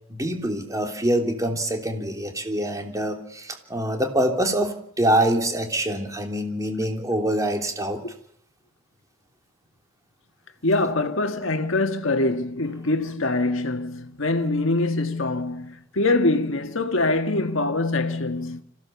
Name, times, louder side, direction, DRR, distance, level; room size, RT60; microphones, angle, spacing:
voice 1, 0.1-8.0, right 1 dB, 15° right, 3.1 m, -25 dB
voice 2, 10.6-18.6, left 2 dB, 65° left, 1.6 m, -24 dB
26.0 x 16.0 x 7.0 m
head